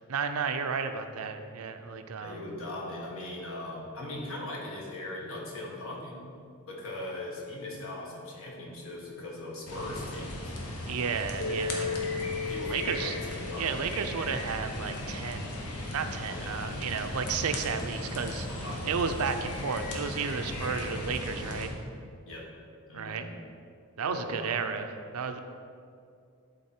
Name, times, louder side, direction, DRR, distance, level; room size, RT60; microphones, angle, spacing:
voice 1, 0.1-2.4 10.8-11.9 12.7-13.2 13.6-15.5 15.9-18.5 18.8-21.7 22.9-23.3 24.0-24.9 25.1-25.4, right 5 dB, 70° right, 7 dB, 0.5 m, -32 dB
voice 2, 2.2-6.3 6.7-10.5 11.5-12.1 12.5-13.7 16.2-16.6 18.5-18.9 22.3-22.5 22.9-23.3 24.0-24.6, left 1 dB, 65° left, -2 dB, 1.5 m, -40 dB
sound 1, 9.7-21.7, left 1 dB, 85° left, 1.2 m, -37 dB
Keyboard (musical), 11.4-14.6, left 5 dB, 25° left, 0.7 m, -36 dB
11.0 x 3.9 x 4.4 m, 2.3 s
head